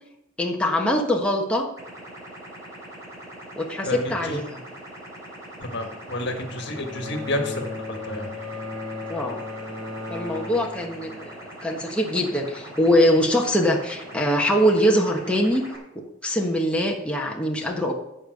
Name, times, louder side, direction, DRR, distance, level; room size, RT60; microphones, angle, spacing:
voice 1, 0.4-1.7 3.6-4.6 9.1-9.4 10.1-17.9, equal, 5° left, 0 dB, 1.2 m, -23 dB
sound 1, 1.8-15.8, right 1 dB, 15° right, 3.6 m, -42 dB
voice 2, 3.8-4.4 5.6-8.3, left 1 dB, 60° left, 5 dB, 1.7 m, -30 dB
Bowed string instrument, 6.3-11.5, left 2 dB, 90° right, 2.5 m, -36 dB
14.0 x 5.4 x 6.6 m, 0.87 s
head